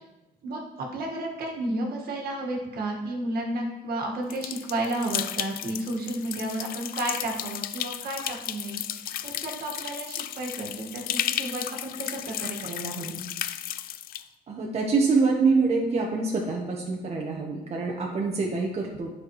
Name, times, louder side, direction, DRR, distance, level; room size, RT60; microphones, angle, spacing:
voice 1, 0.4-13.2, right 1 dB, 65° right, 0 dB, 1.7 m, -32 dB
sound 1, 4.3-14.2, left 12 dB, 60° left, 0.4 m, -34 dB
voice 2, 14.5-19.1, right 4 dB, 40° right, -1 dB, 1.1 m, -25 dB
9.4 x 5.9 x 3.2 m, 0.99 s
cardioid pair, 110°, 17 cm